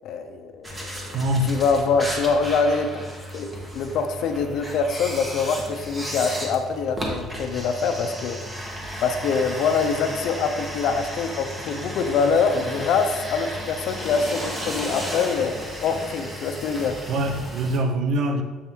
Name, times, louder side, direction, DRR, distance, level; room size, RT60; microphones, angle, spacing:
voice 1, 0.0-1.2 1.5-3.0 3.3-8.5 9.0-17.0, left 5 dB, 50° left, 7 dB, 0.5 m, -24 dB
sound 1, 0.6-17.8, equal, 10° right, 0.9 m, -34 dB
voice 2, 1.0-1.5 17.1-18.4, right 1 dB, 45° right, 6 dB, 0.6 m, -24 dB
7.0 x 4.4 x 3.5 m, 1.3 s
cardioid pair, 175°, 0 cm